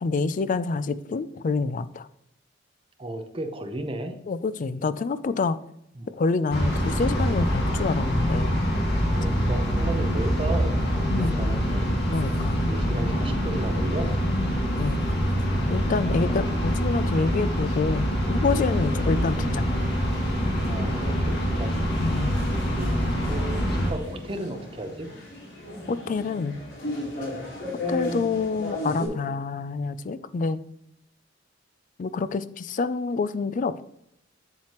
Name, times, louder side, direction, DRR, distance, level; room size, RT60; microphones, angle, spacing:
voice 1, 0.0-2.1 4.3-5.6 6.1-8.7 11.1-11.5 12.1-12.6 14.3-15.0 15.7-19.7 22.0-22.4 25.9-26.6 27.9-30.6 32.0-33.8, left 4 dB, 45° left, 14 dB, 0.4 m, -27 dB
voice 2, 3.0-4.1 6.0-6.1 9.2-10.8 11.1-11.9 12.6-14.1 16.2-16.5 19.0-19.2 20.7-21.7 22.6-25.1, right 1 dB, 30° right, 6 dB, 0.8 m, -34 dB
sound 1, 6.5-23.9, equal, 60° left, 1.9 m, -25 dB
sound 2, 18.5-29.1, left 1 dB, 90° left, 3.3 m, -36 dB
7.5 x 7.3 x 3.0 m, 0.75 s
head